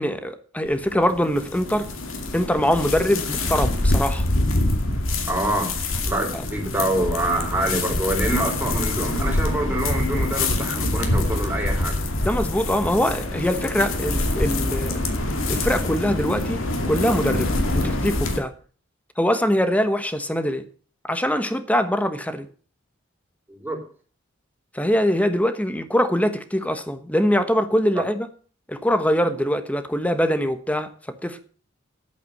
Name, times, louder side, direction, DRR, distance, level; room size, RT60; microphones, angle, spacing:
voice 1, 0.0-1.9 2.3-4.3 6.3-6.4 12.2-15.0 15.5-18.5 19.2-20.7 21.1-22.5 24.7-28.3 28.7-30.9 31.2-31.4, equal, 5° left, 1.1 m, -23 dB
sound 1, 0.7-18.4, left 2 dB, 80° left, 2.5 m, -25 dB
voice 2, 5.2-5.8 6.0-12.0 23.5-23.8 28.0-28.1, right 1 dB, 10° right, 3.6 m, -26 dB
11.0 x 8.4 x 6.6 m
head